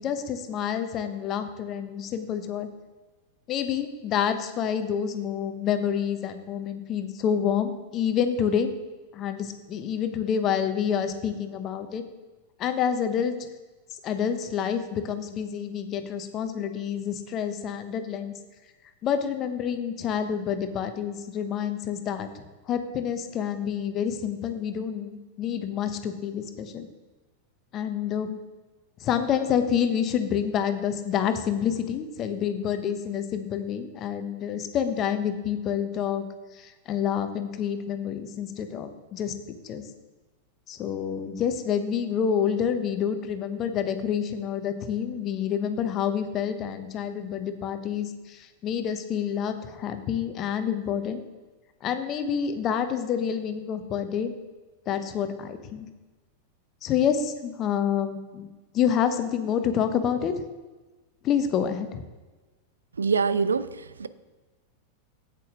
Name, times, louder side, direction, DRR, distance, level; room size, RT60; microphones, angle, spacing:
voice 1, 0.0-2.7 3.5-8.7 9.1-12.0 12.6-13.3 14.0-18.3 19.0-26.9 27.7-28.4 29.0-36.2 36.5-39.3 39.6-39.9 40.7-51.2 51.8-54.3 54.9-55.9 56.8-58.5 58.7-60.3 61.2-62.0, left 8 dB, 35° left, 0.9 m, -28 dB
voice 2, 63.0-64.1, right 5 dB, 75° right, 0.4 m, -25 dB
8.5 x 8.4 x 3.7 m
figure-of-eight pair, 90°, 0 cm